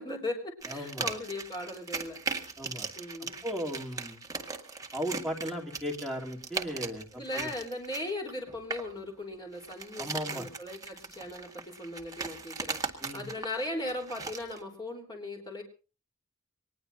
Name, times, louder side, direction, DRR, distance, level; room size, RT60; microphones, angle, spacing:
voice 1, 0.0-2.2 3.0-3.4 7.1-15.6, left 1 dB, 20° left, 1 dB, 3.7 m, -38 dB
sound 1, 0.6-8.9 9.5-14.6, right 4 dB, 15° right, 1.8 m, -39 dB
voice 2, 0.7-1.1 2.6-2.9 3.4-4.2 4.9-7.1 7.3-7.5 10.0-10.5 13.0-13.3, equal, ahead, -3 dB, 2.9 m, -36 dB
24.0 x 20.0 x 2.7 m, 0.35 s
head